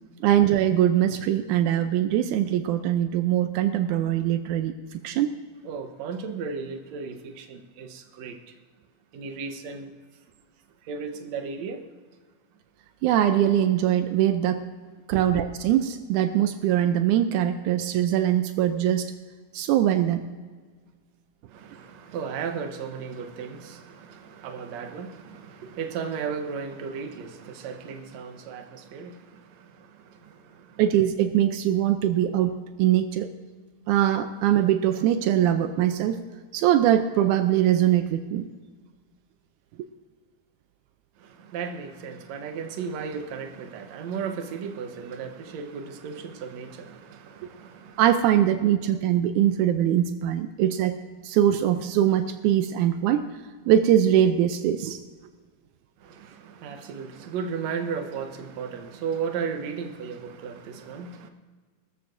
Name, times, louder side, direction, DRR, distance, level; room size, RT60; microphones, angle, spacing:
voice 1, 0.2-5.3 13.0-14.6 15.1-19.1 19.5-20.3 30.8-33.3 33.9-36.2 36.5-38.5 48.0-53.2 53.7-55.0, right 11 dB, 85° right, 1.7 m, -22 dB
voice 2, 5.6-8.5 9.1-9.9 10.8-11.9 15.1-15.2 21.5-30.8 41.2-48.0 56.0-61.3, right 6 dB, 65° right, 1.8 m, -35 dB
21.5 x 13.5 x 2.6 m
omnidirectional pair, 4.2 m